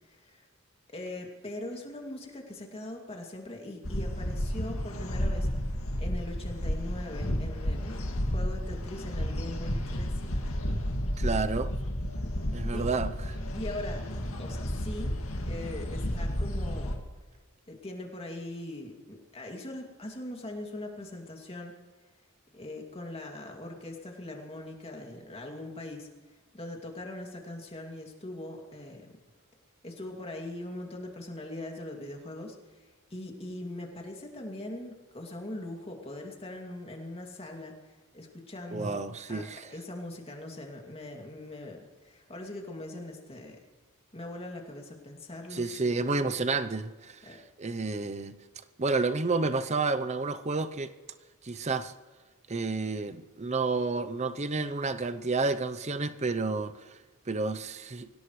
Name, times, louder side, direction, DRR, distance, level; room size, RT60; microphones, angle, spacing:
voice 1, 0.1-0.4 0.9-5.5 6.0-10.3 12.7-12.9 13.5-15.2 15.5-17.0 17.7-21.7 22.5-26.1 26.5-29.1 29.8-32.6 33.1-37.7 38.1-39.0 39.3-39.4 39.7-43.6 44.1-46.3 47.3-47.4, left 1 dB, 25° left, 2.5 m, -41 dB
sound 1, 3.8-17.0, equal, 70° left, 2.2 m, -32 dB
voice 2, 11.2-11.7 12.5-13.1 38.7-39.7 45.5-48.4 48.8-50.9 51.4-51.9 52.5-57.0 57.3-58.1, right 3 dB, 30° right, 0.7 m, -30 dB
25.0 x 17.0 x 3.2 m
head